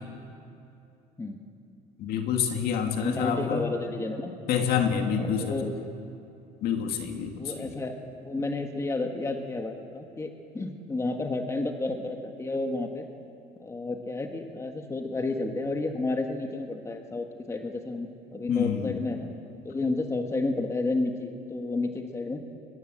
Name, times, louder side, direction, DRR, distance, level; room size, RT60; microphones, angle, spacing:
voice 1, 2.0-3.6 4.5-5.6 6.6-7.7 18.5-19.0, left 7 dB, 60° left, 4 dB, 2.6 m, -28 dB
voice 2, 2.6-4.3 5.0-5.7 7.4-13.1 13.6-19.3 19.6-22.4, left 2 dB, 15° left, 4 dB, 1.6 m, -31 dB
22.5 x 21.0 x 7.8 m, 2.6 s
cardioid pair, 120°, 18 cm